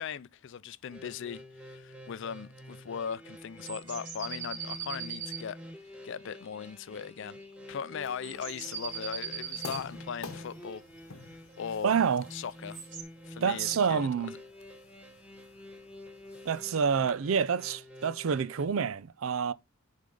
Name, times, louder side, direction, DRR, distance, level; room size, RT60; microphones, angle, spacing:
voice 1, 0.0-1.4 1.7-5.6 6.0-7.4 7.7-10.8 11.2-11.9 12.3-12.8 13.2-14.4, left 7 dB, 60° left, 0.4 m, -39 dB
sound 1, 0.9-18.7, equal, 5° right, 1.1 m, -48 dB
sound 2, 3.6-5.5 6.6-7.0 7.2-7.5 8.2-9.9 12.3-13.0, right 7 dB, 40° right, 3.3 m, -40 dB
sound 3, 8.0-17.1, left 4 dB, 75° left, 0.9 m, -50 dB
voice 2, 11.8-12.2 13.4-14.3 16.5-19.5, right 6 dB, 70° right, 0.4 m, -28 dB
8.4 x 3.7 x 3.8 m
head